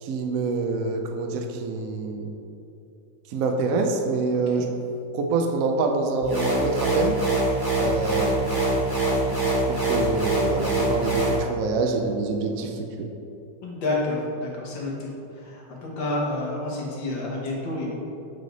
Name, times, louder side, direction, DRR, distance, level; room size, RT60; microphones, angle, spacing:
voice 1, 0.0-2.3 3.3-4.7 5.1-7.2 7.8-8.8 9.2-13.1, right 3 dB, 70° right, 3 dB, 0.8 m, -26 dB
sound 1, 6.2-11.4, right 2 dB, 10° right, 1.4 m, -24 dB
voice 2, 13.6-15.1 15.4-18.0, left 2 dB, 80° left, -3 dB, 2.0 m, -29 dB
7.5 x 5.0 x 3.9 m, 2.8 s
omnidirectional pair, 2.0 m